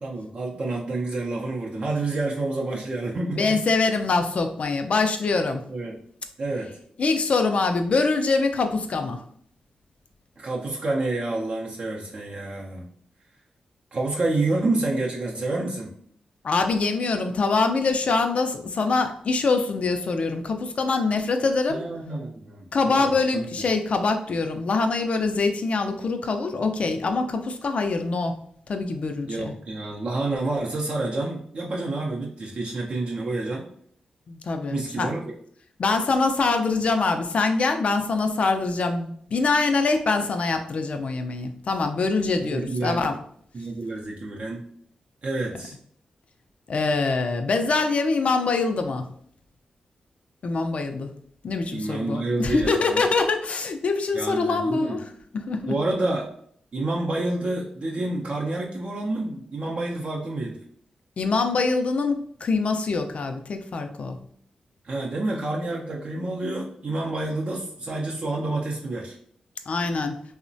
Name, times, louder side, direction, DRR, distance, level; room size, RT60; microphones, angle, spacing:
voice 1, 0.0-3.6 5.7-6.0 6.4-6.8 10.4-12.9 13.9-15.9 21.7-23.4 29.3-33.6 34.7-35.2 42.4-43.1 43.5-44.6 45.2-45.8 51.7-53.0 54.1-55.0 55.7-56.3 56.7-60.6 64.8-69.2, right 2 dB, 55° right, -3 dB, 0.5 m, -28 dB
voice 2, 3.3-5.6 7.0-9.2 16.4-21.8 22.7-28.4 28.7-29.5 34.3-35.1 35.8-43.2 46.7-49.1 50.4-51.1 51.4-55.0 55.3-55.7 61.2-64.2 69.7-70.2, left 3 dB, 60° left, 6 dB, 0.3 m, -24 dB
2.9 x 2.1 x 2.6 m, 0.63 s
cardioid pair, 65°, 2 cm